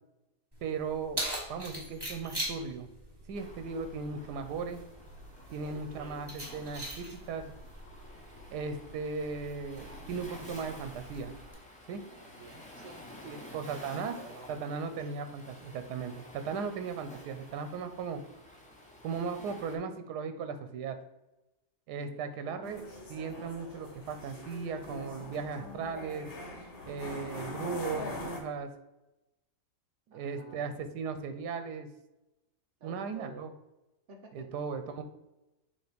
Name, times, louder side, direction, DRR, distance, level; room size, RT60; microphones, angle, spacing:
Keys jangling, 0.5-11.5, right 1 dB, 15° right, 1.3 m, -43 dB
voice 1, 0.6-2.9 3.3-4.8 5.5-7.5 8.5-11.3 11.9-12.0 13.3-14.2 14.5-18.2 19.0-21.0 21.9-26.3 26.9-28.7 30.1-31.9 32.8-33.5 34.3-35.0, right 5 dB, 85° right, 9 dB, 1.2 m, -37 dB
Waves surf, 3.3-19.8, left 1 dB, 5° left, 1.0 m, -51 dB
voice 2, 5.5-6.2 12.2-14.7 15.0-15.1 22.0-22.6 27.1-27.3 30.1-30.7 32.8-33.5 34.1-34.5, right 3 dB, 55° right, 3 dB, 1.0 m, -52 dB
sound 1, 22.6-28.4, left 1 dB, 40° left, 1.3 m, -42 dB
7.4 x 2.9 x 5.0 m, 0.96 s
omnidirectional pair, 1.7 m